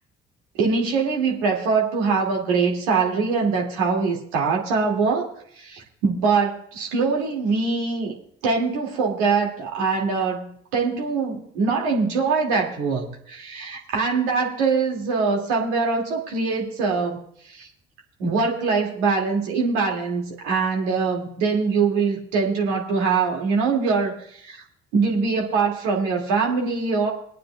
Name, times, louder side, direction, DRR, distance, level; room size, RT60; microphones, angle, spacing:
voice 1, 0.6-5.3 5.6-8.1 8.4-17.2 17.4-17.7 18.2-24.6 24.9-27.1, right 4 dB, 70° right, -1 dB, 2.3 m, -23 dB
26.0 x 9.1 x 2.3 m, 0.64 s
figure-of-eight pair, 50°, 32 cm